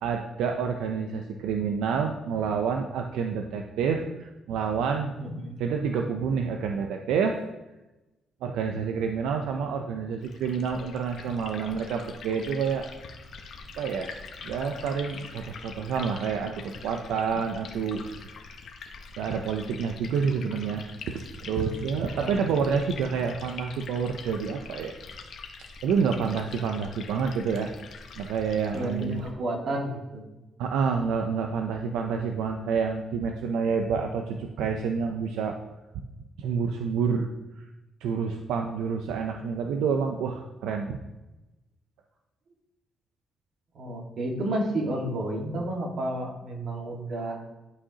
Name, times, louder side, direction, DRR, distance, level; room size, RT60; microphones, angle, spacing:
voice 1, 0.0-5.1 5.6-7.4 8.4-12.9 13.8-14.1 14.4-18.3 19.2-20.8 21.1-24.9 25.8-27.7 28.2-29.2 30.6-35.6 36.4-37.3 37.6-37.7 38.0-41.0, right 6 dB, 90° right, 4 dB, 0.5 m, -28 dB
voice 2, 5.2-5.6 22.1-22.6 28.7-30.2 43.8-47.4, right 1 dB, 60° right, 0 dB, 1.7 m, -31 dB
Liquid, 10.2-29.3, left 4 dB, 65° left, 1.0 m, -44 dB
11.0 x 4.9 x 2.9 m, 1.0 s
cardioid pair, 90°, 0 cm